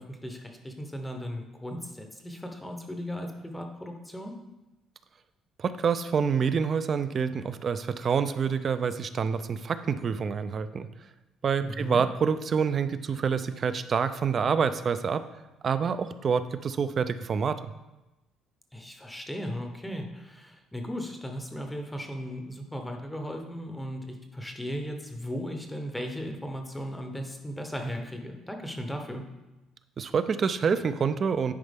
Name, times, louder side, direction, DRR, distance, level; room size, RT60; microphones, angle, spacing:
voice 1, 0.0-4.3 11.6-12.0 18.7-29.2, equal, 5° left, 4 dB, 0.7 m, -36 dB
voice 2, 5.6-10.9 11.4-15.2 15.6-17.6 30.0-31.5, right 6 dB, 35° right, 12 dB, 0.4 m, -27 dB
10.5 x 4.4 x 3.5 m, 1.0 s
cardioid pair, 140°, 0 cm